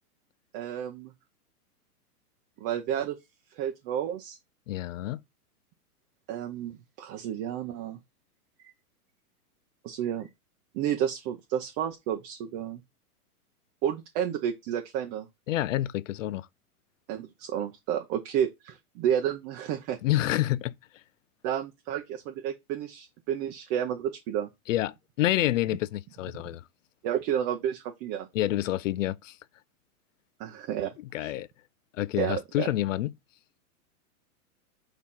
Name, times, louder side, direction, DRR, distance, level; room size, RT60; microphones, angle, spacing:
voice 1, 0.5-1.1 2.6-3.2 3.6-4.4 6.3-8.0 9.8-10.3 10.7-12.8 13.8-15.3 17.1-20.0 21.4-24.5 27.0-28.3 30.4-31.3 32.1-32.7, right 10 dB, 25° right, 0.6 m, -31 dB
voice 2, 4.7-5.2 15.5-16.5 20.0-20.7 24.7-26.6 28.3-29.4 31.1-31.5 32.0-33.1, left 14 dB, 60° left, 0.5 m, -28 dB
6.6 x 3.0 x 5.4 m
hypercardioid pair, 145°, 46 cm